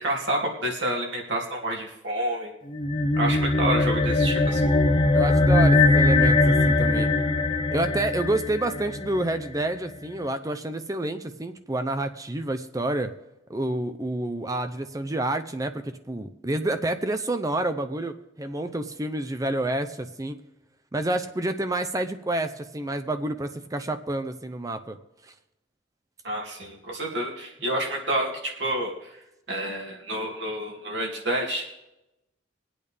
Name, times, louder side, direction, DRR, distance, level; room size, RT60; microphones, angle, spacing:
voice 1, 0.0-2.5 3.1-4.7 26.2-29.2 29.5-31.7, right 1 dB, 65° right, -1 dB, 2.6 m, -29 dB
sound 1, 2.7-9.4, left 2 dB, 25° left, 0.6 m, -21 dB
voice 2, 5.1-7.1 7.7-13.1 13.5-20.4 20.9-25.0 25.2-25.3, right 1 dB, 20° right, 8 dB, 0.6 m, -28 dB
23.0 x 8.7 x 3.5 m, 0.92 s
head